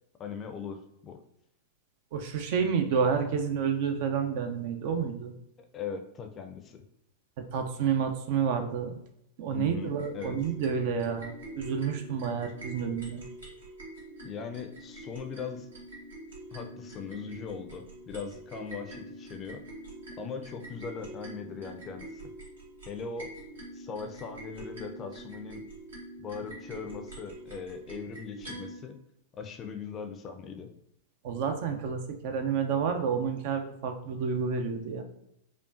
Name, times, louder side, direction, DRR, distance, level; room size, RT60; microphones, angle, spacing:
voice 1, 0.2-1.2 5.6-6.8 9.5-10.4 14.2-15.7 16.5-19.6 20.2-22.3 22.9-23.3 23.7-25.6 26.2-29.0 29.3-30.7, left 6 dB, 30° left, 6 dB, 0.4 m, -40 dB
voice 2, 2.1-5.3 7.5-9.0 9.4-13.2 31.2-35.0, right 6 dB, 50° right, 6 dB, 0.5 m, -29 dB
sound 1, 9.9-28.8, right 1 dB, 75° right, 1.4 m, -45 dB
5.0 x 2.4 x 2.5 m, 0.80 s
figure-of-eight pair, 95°, 0 cm